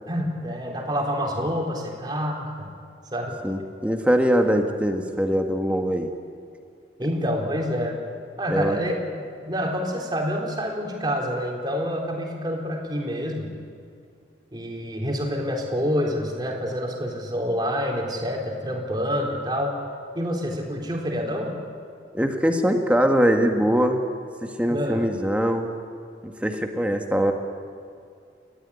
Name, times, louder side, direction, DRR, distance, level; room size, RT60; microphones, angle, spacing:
voice 1, 0.1-2.7 3.1-3.4 7.0-8.0 8.4-13.5 14.5-19.8 20.1-21.6 24.7-25.1, equal, 25° right, 0 dB, 3.9 m, -27 dB
voice 2, 3.4-6.1 8.5-8.8 22.1-24.0 24.4-25.7 26.2-27.3, equal, 5° right, 4 dB, 1.6 m, -22 dB
30.0 x 14.0 x 9.9 m, 2.4 s
head